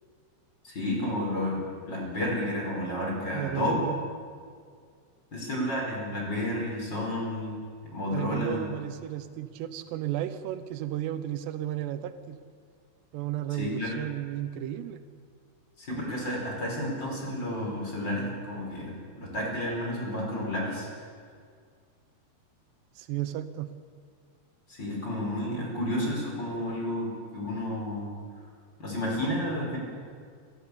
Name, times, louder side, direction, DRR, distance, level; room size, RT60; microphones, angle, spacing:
voice 1, 0.6-3.8 5.3-7.6 7.9-8.7 13.5-14.0 15.8-20.9 24.7-28.1 28.8-29.8, left 1 dB, 25° left, -1 dB, 5.3 m, -31 dB
voice 2, 3.3-4.0 8.1-12.4 13.1-15.0 23.0-23.7, right 12 dB, 80° right, 11 dB, 3.0 m, -33 dB
26.5 x 14.0 x 8.5 m, 2.1 s
omnidirectional pair, 4.9 m